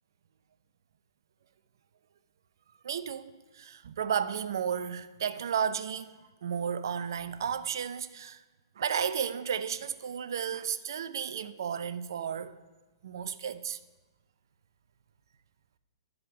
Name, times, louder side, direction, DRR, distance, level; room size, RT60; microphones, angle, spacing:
voice 1, 2.8-6.2 6.4-8.4 8.8-12.5 13.0-13.8, right 8 dB, 65° right, 0.5 m, -33 dB
11.0 x 5.0 x 6.0 m
hypercardioid pair, 125°, 2 cm